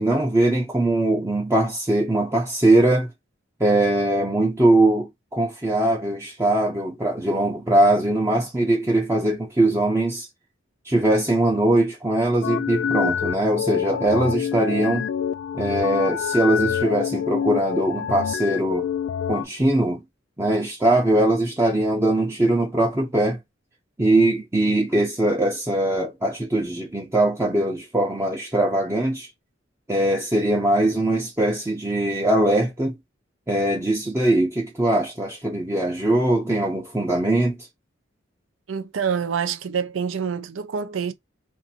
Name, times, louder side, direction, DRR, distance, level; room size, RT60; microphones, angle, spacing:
voice 1, 0.0-3.1 3.6-10.3 10.8-15.1 15.5-18.9 19.3-20.0 20.4-23.4 24.0-29.3 29.9-33.0 33.5-37.7, right 1 dB, 15° right, 0.5 m, -21 dB
sound 1, 12.4-19.4, left 8 dB, 80° left, 0.3 m, -26 dB
voice 2, 38.7-41.1, right 6 dB, 90° right, 0.5 m, -26 dB
2.6 x 2.5 x 2.6 m
head